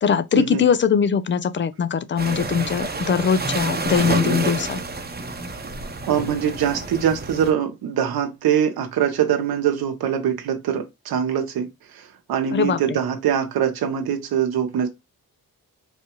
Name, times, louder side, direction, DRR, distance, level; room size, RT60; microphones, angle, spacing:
voice 1, 0.0-4.8 12.5-13.0, left 7 dB, 35° left, 0.4 m, -21 dB
sound 1, 2.2-7.5, right 3 dB, 25° right, 0.8 m, -28 dB
voice 2, 6.1-14.9, right 9 dB, 85° right, 0.9 m, -23 dB
4.3 x 2.3 x 2.9 m
cardioid pair, 75°, 36 cm